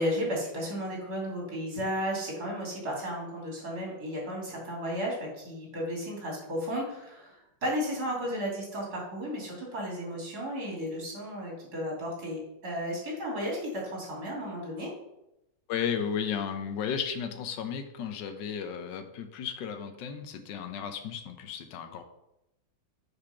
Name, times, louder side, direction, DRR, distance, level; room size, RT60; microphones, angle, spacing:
voice 1, 0.0-14.9, equal, 55° right, -3 dB, 3.4 m, -34 dB
voice 2, 15.7-22.0, left 7 dB, 75° left, 7 dB, 1.4 m, -34 dB
7.0 x 4.9 x 5.8 m, 0.87 s
omnidirectional pair, 2.0 m